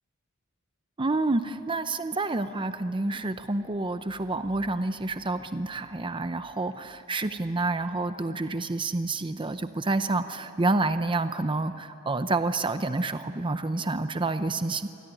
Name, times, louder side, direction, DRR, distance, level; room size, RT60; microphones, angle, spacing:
voice 1, 1.0-14.9, right 2 dB, 20° right, 10 dB, 0.6 m, -28 dB
27.0 x 20.0 x 10.0 m, 2.8 s
head